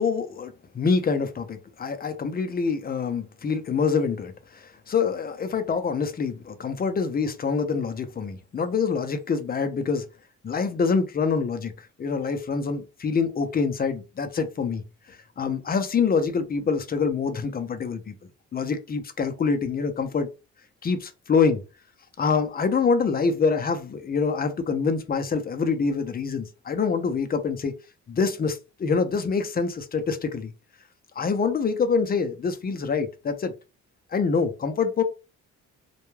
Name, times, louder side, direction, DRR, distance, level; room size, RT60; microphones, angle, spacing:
voice 1, 0.0-10.1 10.4-14.8 15.1-18.1 18.5-20.3 20.8-21.6 22.2-27.7 28.1-30.5 31.2-33.5 34.1-35.0, left 5 dB, 30° left, 0.5 m, -25 dB
2.2 x 2.2 x 3.1 m
cardioid pair, 90°, 30 cm